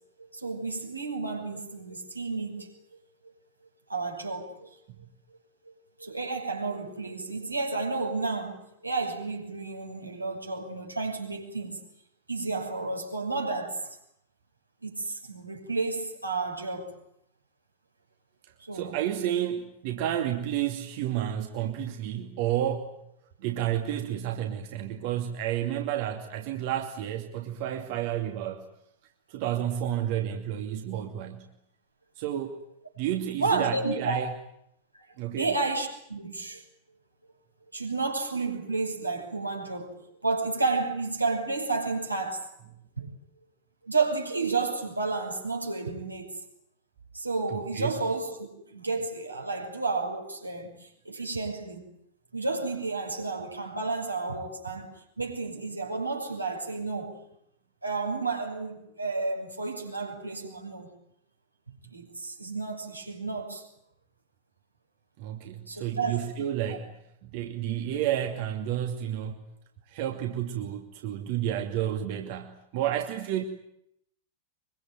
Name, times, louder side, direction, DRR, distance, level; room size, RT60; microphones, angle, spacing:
voice 1, 0.3-2.7 3.9-4.7 6.0-11.8 12.3-14.0 14.8-16.9 18.6-18.9 33.4-34.2 35.4-36.6 37.7-40.0 40.2-42.5 43.0-43.1 43.8-46.4 47.1-51.9 52.3-57.1 57.8-60.9 61.9-63.6 65.7-66.3 66.7-66.8, right 3 dB, 85° right, 6.5 m, -31 dB
voice 2, 18.4-23.0 23.4-28.7 29.3-31.5 32.2-32.6 33.0-34.3 35.2-35.5 47.5-48.0 65.2-66.9 67.2-69.4 69.9-73.5, right 11 dB, 50° right, 2.6 m, -31 dB
24.0 x 24.0 x 9.3 m
figure-of-eight pair, 90°, 0 cm